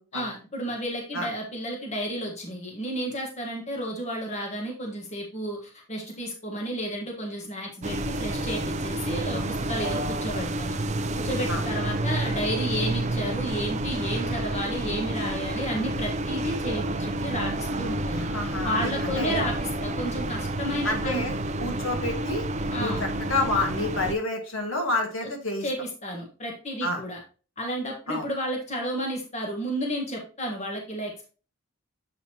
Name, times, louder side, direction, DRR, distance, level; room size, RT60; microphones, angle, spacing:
voice 1, 0.1-10.8 11.2-18.3 18.6-21.3 22.7-23.0 25.6-25.8 26.0-27.2 27.6-31.2, equal, 30° left, 0 dB, 1.5 m, -32 dB
sound 1, 7.8-24.1, right 1 dB, 30° right, 0.5 m, -29 dB
voice 2, 18.1-19.4 20.8-21.3 21.6-22.4 22.8-25.7 26.8-27.0 28.1-28.3, left 2 dB, 65° left, 2 dB, 1.8 m, -29 dB
7.9 x 5.4 x 2.9 m, 0.35 s
head